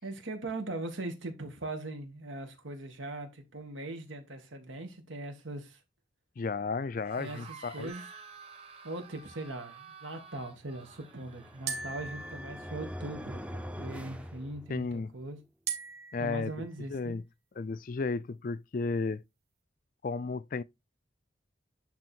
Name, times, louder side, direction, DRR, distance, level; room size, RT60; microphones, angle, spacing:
voice 1, 0.0-5.8 7.2-8.1 8.8-15.4 16.2-17.2, right 2 dB, 85° right, 2.3 m, -40 dB
voice 2, 6.4-7.9 14.7-15.1 16.1-17.2 17.6-19.2 20.0-20.6, left 4 dB, 45° left, 0.4 m, -33 dB
sound 1, 7.0-12.4, right 4 dB, 30° right, 1.3 m, -51 dB
sound 2, 7.9-9.3 11.7-13.3 15.7-16.8, right 6 dB, 55° right, 2.6 m, -42 dB
sound 3, 10.8-15.1, equal, 5° right, 0.6 m, -43 dB
10.5 x 3.6 x 4.5 m
head